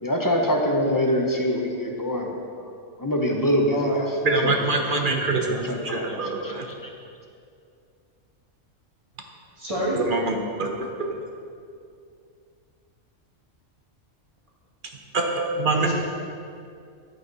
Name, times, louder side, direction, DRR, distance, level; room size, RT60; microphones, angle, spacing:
voice 1, 0.0-2.3 3.0-4.0 4.4-4.5 4.8-4.9 5.5-6.9, equal, 20° left, 1 dB, 0.8 m, -25 dB
voice 2, 3.7-4.0 9.6-10.0 15.8-15.9, equal, 25° right, -5 dB, 2.0 m, -27 dB
voice 3, 4.2-6.7 9.9-11.1 15.1-15.9, right 3 dB, 45° right, 2 dB, 1.1 m, -25 dB
10.5 x 8.5 x 4.0 m, 2.4 s
omnidirectional pair, 1.3 m